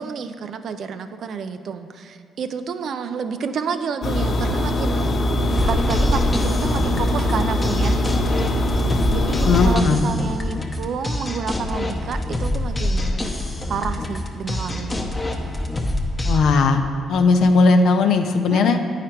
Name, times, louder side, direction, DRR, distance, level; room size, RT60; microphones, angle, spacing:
voice 1, 0.0-5.2 5.6-8.3 9.1-15.0 18.5-18.8, right 6 dB, 65° right, 10 dB, 0.4 m, -30 dB
sound 1, 4.0-9.8, left 1 dB, 50° left, 0.9 m, -21 dB
sound 2, 5.5-16.4, left 1 dB, 20° left, 0.8 m, -25 dB
voice 2, 9.5-10.0 16.2-18.8, left 4 dB, 75° left, 6 dB, 0.5 m, -17 dB
9.0 x 4.9 x 4.5 m, 2.2 s
cardioid pair, 90°, 0 cm